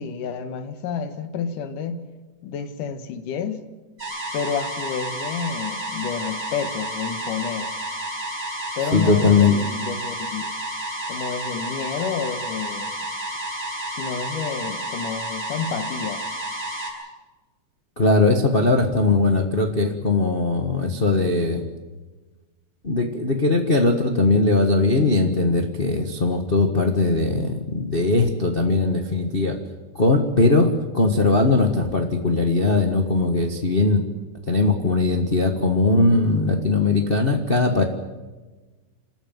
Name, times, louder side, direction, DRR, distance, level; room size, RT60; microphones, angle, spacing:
voice 1, 0.0-2.1 2.4-3.7 4.3-7.7 8.8-10.5 11.1-12.9 14.0-16.3, left 6 dB, 90° left, 3.0 m, -30 dB
sound 1, 4.0-16.9, right 1 dB, 15° right, 7.3 m, -31 dB
voice 2, 8.9-9.6 18.0-21.7 22.8-29.6 29.9-34.0 34.5-37.8, left 3 dB, 40° left, 0.8 m, -20 dB
28.0 x 13.0 x 9.2 m
omnidirectional pair, 3.6 m